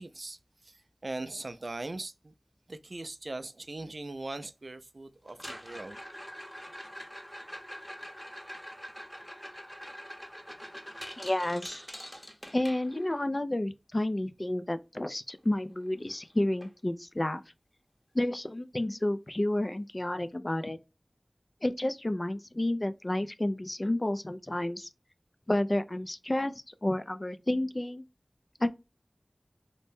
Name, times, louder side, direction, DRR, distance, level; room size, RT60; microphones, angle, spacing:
voice 1, 0.0-2.3 2.7-6.0, right 2 dB, 70° right, 0.3 m, -40 dB
sound 1, 5.3-13.3 15.5-15.6 15.9-16.2 16.6-16.7 17.3-17.4 19.3-19.4, equal, 15° left, 0.7 m, -44 dB
voice 2, 11.2-11.8 12.5-17.4 18.1-20.8 21.6-24.9 25.5-28.0 28.6-28.7, left 1 dB, 40° left, 0.3 m, -30 dB
2.6 x 2.0 x 3.4 m
wide cardioid pair, 40°, 0 cm